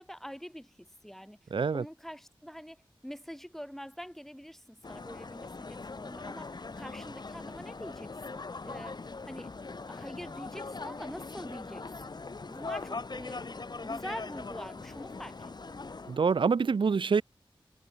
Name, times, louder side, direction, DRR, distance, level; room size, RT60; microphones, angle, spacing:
voice 1, 0.0-9.5 9.9-12.2 12.5-13.5 13.8-15.8, equal, 5° left, 1.2 m, -45 dB
voice 2, 1.5-1.8 16.1-17.2, right 5 dB, 65° right, 0.5 m, -26 dB
sound 1, 4.8-16.2, left 3 dB, 50° left, 1.2 m, -41 dB
wide cardioid pair, 65°, 9 cm